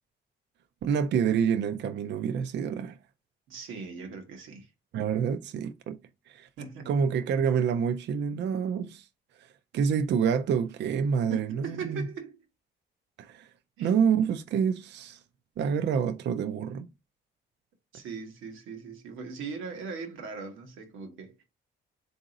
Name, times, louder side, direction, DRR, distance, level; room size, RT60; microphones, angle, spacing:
voice 1, 0.8-3.0 4.9-6.0 6.3-6.5 6.9-9.0 9.7-12.1 13.2-13.5 13.8-15.2 15.6-16.9, right 7 dB, 60° right, 0.5 m, -27 dB
voice 2, 3.5-4.7 6.6-6.9 11.3-12.4 13.8-13.9 17.9-21.4, right 5 dB, 85° right, 1.0 m, -39 dB
3.7 x 2.7 x 3.9 m
cardioid pair, 90°, 20 cm